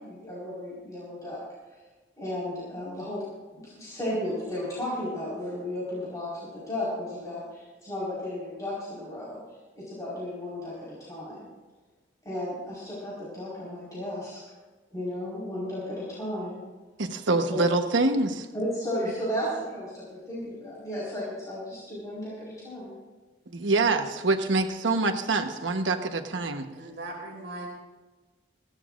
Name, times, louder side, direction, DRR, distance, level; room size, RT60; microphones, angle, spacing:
voice 1, 0.0-1.4 2.2-3.2 3.5-9.4 9.7-11.5 12.2-14.4 14.9-16.6 17.5-17.6 18.5-23.0, left 1 dB, 20° left, -8 dB, 4.7 m, -34 dB
voice 2, 17.0-18.5 23.5-26.7, right 3 dB, 90° right, 6 dB, 1.2 m, -25 dB
voice 3, 26.7-27.7, right 2 dB, 65° right, -6 dB, 2.8 m, -39 dB
21.0 x 16.5 x 2.5 m, 1.3 s
head